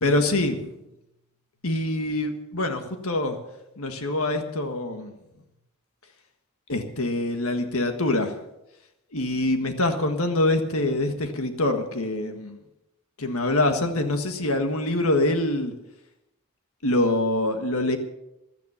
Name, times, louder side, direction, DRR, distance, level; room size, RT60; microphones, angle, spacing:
voice 1, 0.0-0.7 1.6-3.4 3.8-5.1 6.7-8.4 9.1-12.6 13.2-15.7 16.8-18.0, left 2 dB, 70° left, 6 dB, 1.6 m, -25 dB
16.5 x 12.0 x 5.7 m, 0.89 s
head